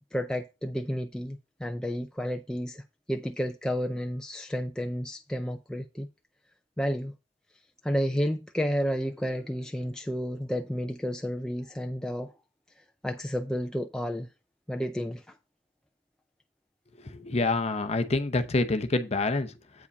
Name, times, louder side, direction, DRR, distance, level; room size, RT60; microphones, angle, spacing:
voice 1, 0.1-2.8 3.1-6.1 6.8-7.1 7.8-12.3 13.0-14.3 14.7-15.4, equal, 5° left, 0.4 m, -31 dB
voice 2, 17.0-19.9, left 2 dB, 35° left, 0.7 m, -27 dB
8.3 x 5.0 x 5.2 m
head